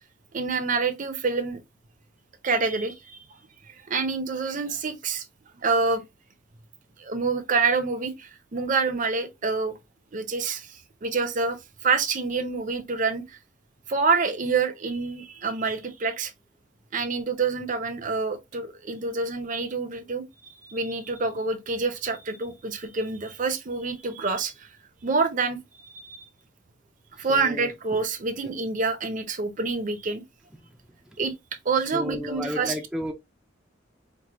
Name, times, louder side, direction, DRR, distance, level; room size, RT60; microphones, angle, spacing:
voice 1, 0.3-1.6 2.4-3.2 3.7-5.2 5.6-6.0 7.0-9.8 10.1-11.6 11.8-13.4 13.9-16.3 16.9-20.2 20.6-24.7 25.0-25.6 25.9-26.2 27.2-30.2 31.2-31.3 31.6-32.8, right 4 dB, 45° right, 0.6 m, -27 dB
voice 2, 27.3-27.7 31.9-33.1, left 1 dB, 5° right, 0.4 m, -32 dB
4.6 x 2.2 x 2.8 m
head